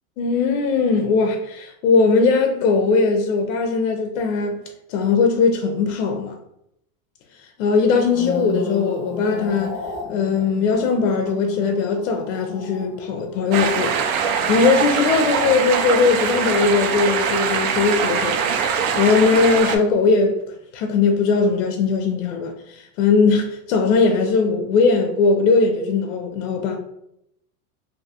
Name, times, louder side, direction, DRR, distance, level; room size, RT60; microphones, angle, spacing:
voice 1, 0.2-4.6 4.9-6.4 7.6-9.8 10.1-18.5 18.9-26.8, left 4 dB, 65° left, 0.5 m, -19 dB
sound 1, 7.9-16.3 16.5-16.9, left 3 dB, 5° right, 0.4 m, -35 dB
sound 2, 13.5-19.8, right 6 dB, 75° right, 0.6 m, -22 dB
2.5 x 2.2 x 2.6 m
supercardioid pair, 155°, 44 cm